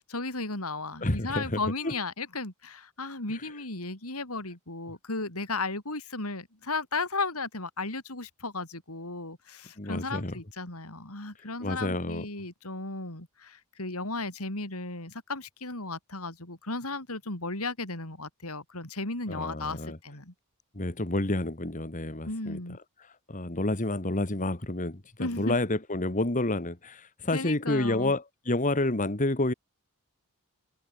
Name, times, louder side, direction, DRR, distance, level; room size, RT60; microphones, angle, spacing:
voice 1, 0.0-20.3 22.3-22.8 25.2-25.6 27.3-28.1, left 3 dB, 80° left, 6.0 m, -35 dB
voice 2, 1.0-1.6 1.8-1.9 9.8-10.4 11.6-12.3 19.3-20.0 20.8-22.6 23.3-29.5, left 2 dB, 35° left, 1.9 m, -29 dB
head